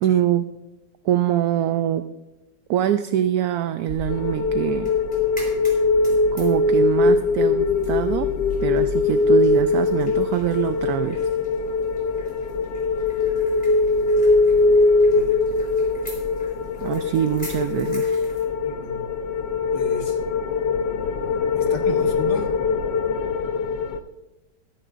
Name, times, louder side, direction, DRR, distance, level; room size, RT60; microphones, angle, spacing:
voice 1, 0.0-0.5 1.0-2.1 2.7-4.9 6.3-8.3 8.6-11.2 16.8-18.1, right 11 dB, 70° right, 11 dB, 1.0 m, -24 dB
sound 1, 3.9-18.4, left 1 dB, 5° left, 3.7 m, -43 dB
sound 2, 4.1-24.0, left 3 dB, 85° left, 1.5 m, -21 dB
voice 2, 18.6-19.1 19.7-20.2 21.6-22.5, left 5 dB, 65° left, 3 dB, 1.9 m, -33 dB
21.0 x 10.0 x 2.5 m, 1.0 s
omnidirectional pair, 1.8 m